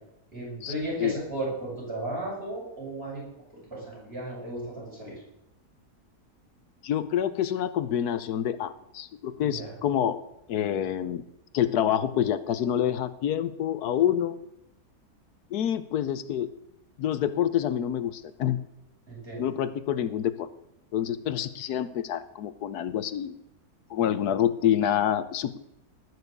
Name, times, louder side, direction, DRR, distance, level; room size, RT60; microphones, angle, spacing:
voice 1, 0.3-3.2 3.7-5.1 9.4-9.7 19.1-19.4, right 1 dB, 40° right, -5 dB, 7.4 m, -35 dB
voice 2, 6.8-10.2 10.5-11.2 11.5-14.4 15.5-16.5 17.0-18.6 19.4-20.5 20.9-23.4 23.9-25.6, left 10 dB, 85° left, 13 dB, 1.3 m, -27 dB
19.0 x 6.4 x 8.2 m, 0.84 s
omnidirectional pair, 1.6 m